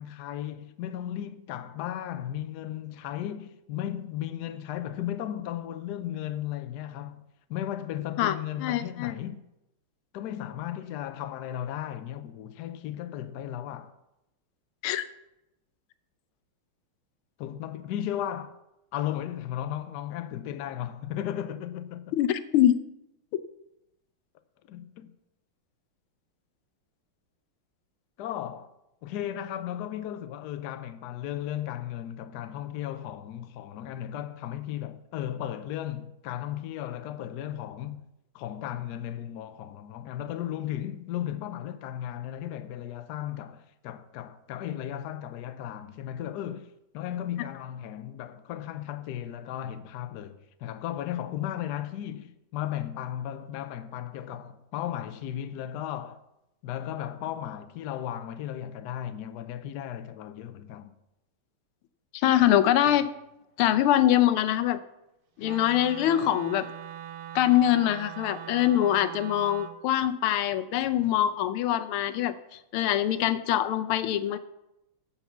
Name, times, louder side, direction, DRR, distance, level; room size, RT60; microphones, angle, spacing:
voice 1, 0.0-7.2 7.5-9.4 10.1-13.9 17.4-18.5 18.9-22.1 24.7-25.1 28.2-28.7 29.0-38.0 38.3-46.7 46.9-56.2 56.6-60.9, left 11 dB, 70° left, 1.0 m, -35 dB
voice 2, 8.2-9.1 14.8-15.1 22.2-22.8 62.1-63.1 63.6-64.8 65.4-66.7 67.3-72.3 72.7-74.4, left 12 dB, 85° left, 1.5 m, -24 dB
Wind instrument woodwind instrument, 65.4-69.8, right 11 dB, 80° right, 1.5 m, -41 dB
9.8 x 5.9 x 7.1 m
omnidirectional pair, 2.3 m